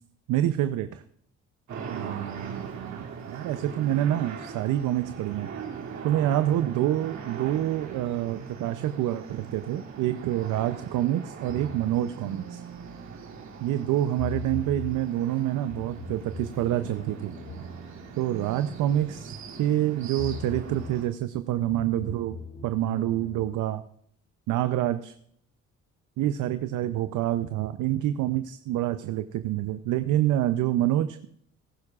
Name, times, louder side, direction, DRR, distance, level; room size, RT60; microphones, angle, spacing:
voice 1, 0.3-1.0 1.9-5.5 6.0-12.6 13.6-17.3 18.2-23.8 24.5-25.1 26.2-31.3, right 12 dB, 85° right, 10 dB, 0.6 m, -27 dB
sound 1, 1.7-21.1, right 6 dB, 70° right, 2.7 m, -41 dB
sound 2, 11.5-13.7 14.2-15.0 15.7-19.8 20.2-21.0 21.7-23.5, left 2 dB, 75° left, 5.4 m, -41 dB
19.5 x 11.0 x 2.4 m, 0.68 s
cardioid pair, 90°, 30 cm